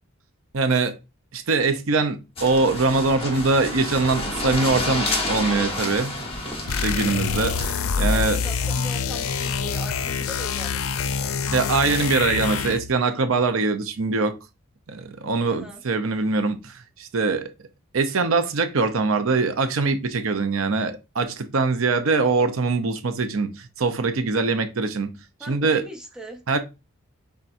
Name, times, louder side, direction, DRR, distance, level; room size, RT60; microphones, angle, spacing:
voice 1, 0.5-1.0 1.3-6.1 6.7-8.4 11.5-14.3 14.9-17.5 17.9-25.1 25.5-25.8 26.5-26.6, right 3 dB, 75° right, 0.7 m, -23 dB
sound 1, 2.4-7.7, left 2 dB, 25° left, 1.1 m, -29 dB
sound 2, 6.7-12.9, left 5 dB, 80° left, 0.4 m, -26 dB
voice 2, 8.1-11.4 15.4-15.8 25.4-26.6, right 1 dB, 5° right, 0.8 m, -40 dB
5.6 x 3.6 x 2.6 m
head